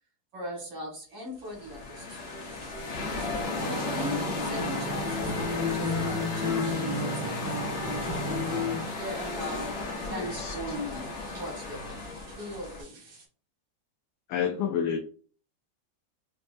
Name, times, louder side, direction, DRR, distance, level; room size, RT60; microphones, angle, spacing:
voice 1, 0.3-2.4 3.0-7.9 9.0-13.0, left 1 dB, 75° right, -2 dB, 2.4 m, -39 dB
sound 1, 1.0-13.3, right 4 dB, 60° right, 1.6 m, -53 dB
sound 2, 1.5-12.8, left 3 dB, 50° left, 0.8 m, -34 dB
Acoustic guitar, 3.6-9.0, left 2 dB, 20° right, 0.5 m, -32 dB
voice 2, 10.2-10.5 14.3-15.0, left 8 dB, 80° left, 4 dB, 1.2 m, -29 dB
5.2 x 2.3 x 2.6 m, 0.43 s
omnidirectional pair, 2.1 m